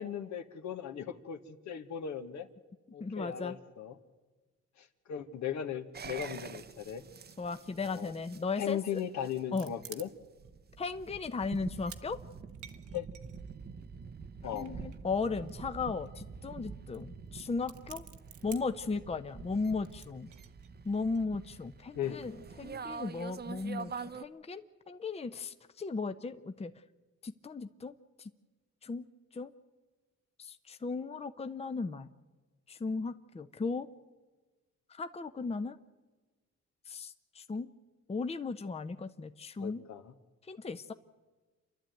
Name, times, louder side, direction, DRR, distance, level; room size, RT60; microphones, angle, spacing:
voice 1, 0.0-2.5 2.9-4.0 4.8-7.0 7.8-8.1 8.6-10.1 12.9-13.1 14.4-14.7 21.9-22.2 39.6-40.1, left 9 dB, 65° left, 8 dB, 1.4 m, -38 dB
voice 2, 3.0-3.6 7.4-9.0 9.5-9.7 10.8-12.2 14.5-18.1 18.4-20.3 20.8-26.7 27.2-28.3 28.8-29.0 29.3-29.5 30.4-32.1 32.7-33.9 34.9-35.8 36.9-37.7 38.1-39.8 40.5-40.9, left 4 dB, 20° left, 10 dB, 0.8 m, -36 dB
sound 1, 5.9-24.2, right 5 dB, 35° right, 0.8 m, -46 dB
sound 2, 9.5-10.5 10.8-10.9 11.4-12.0 12.3-13.9 14.6-15.8 16.0-16.1 16.3-16.5 16.9-17.0 17.3-18.8 19.8-21.2, right 9 dB, 75° right, 1.3 m, -51 dB
28.0 x 11.5 x 9.2 m, 1.3 s
cardioid pair, 90°, 30 cm